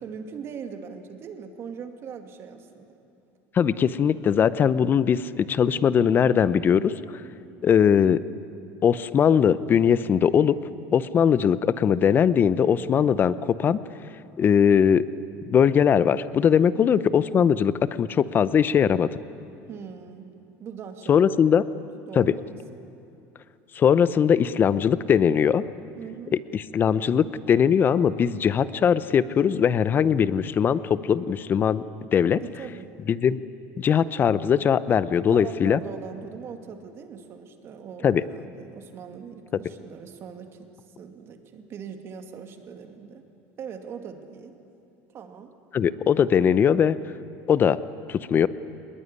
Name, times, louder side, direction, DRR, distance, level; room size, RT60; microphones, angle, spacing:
voice 1, 0.0-2.9 7.5-7.6 16.7-17.0 19.7-20.3 20.6-21.6 22.1-22.6 26.0-26.4 32.4-33.0 35.3-40.7 41.0-43.2 43.6-44.6 45.1-45.5, right 7 dB, 40° right, 6 dB, 2.4 m, -40 dB
voice 2, 3.5-6.9 7.6-8.2 8.8-10.6 10.9-13.8 14.4-15.0 15.5-19.1 21.1-21.6 22.2-22.3 23.7-25.6 26.5-31.8 32.1-32.4 33.1-33.4 33.8-35.8 38.0-38.2 45.7-47.0 47.5-47.8 48.1-48.5, left 8 dB, 30° left, 16 dB, 0.8 m, -20 dB
21.5 x 21.0 x 9.8 m, 2.7 s
supercardioid pair, 125°, 6 cm